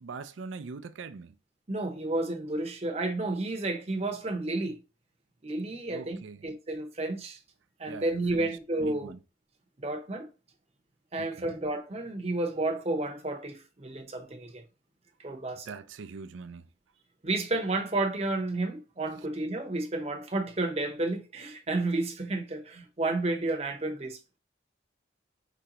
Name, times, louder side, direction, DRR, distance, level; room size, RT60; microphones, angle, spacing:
voice 1, 0.0-1.3 5.9-6.4 7.9-8.5 8.8-9.2 11.2-11.5 15.7-16.6, right 4 dB, 85° right, 0.5 m, -42 dB
voice 2, 1.7-4.8 5.4-7.4 7.8-9.1 9.8-10.3 11.1-14.6 15.2-15.7 17.2-24.2, right 2 dB, 35° right, 0.7 m, -31 dB
5.0 x 3.3 x 2.9 m
head